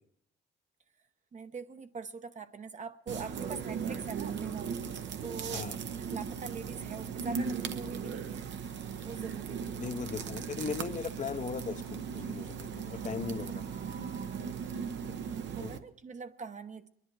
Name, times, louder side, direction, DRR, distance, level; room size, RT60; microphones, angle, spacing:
voice 1, 1.3-8.4 9.0-10.0 14.3-16.9, right 5 dB, 40° right, 9 dB, 0.9 m, -44 dB
sound 1, 3.1-15.8, right 6 dB, 65° right, 1.0 m, -37 dB
voice 2, 9.8-13.6 15.6-15.8, left 6 dB, 40° left, 9 dB, 0.9 m, -38 dB
22.5 x 11.0 x 4.7 m, 0.77 s
cardioid pair, 90°, 20 cm